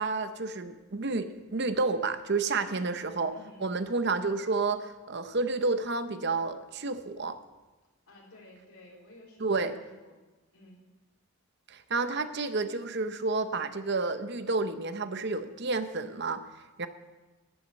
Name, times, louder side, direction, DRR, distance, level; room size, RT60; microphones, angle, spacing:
voice 1, 0.0-3.3 3.6-7.3 9.4-9.7 11.7-16.4 16.8-16.9, right 3 dB, 50° right, 10 dB, 0.7 m, -30 dB
voice 2, 2.6-3.0 3.3-3.7 8.1-10.2 10.5-10.8, left 1 dB, 80° left, -2 dB, 3.9 m, -53 dB
12.0 x 8.5 x 7.6 m, 1.2 s
head